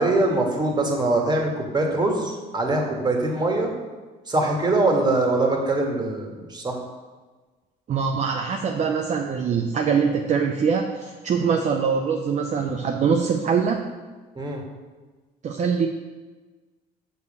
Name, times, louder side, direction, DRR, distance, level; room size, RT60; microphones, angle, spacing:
voice 1, 0.0-3.7 4.3-6.8 14.4-14.6, right 2 dB, 25° right, 1 dB, 1.8 m, -23 dB
voice 2, 7.9-13.8 15.4-15.9, right 6 dB, 45° right, 2 dB, 0.7 m, -23 dB
6.5 x 5.4 x 6.8 m, 1.3 s
cardioid pair, 110°, 17 cm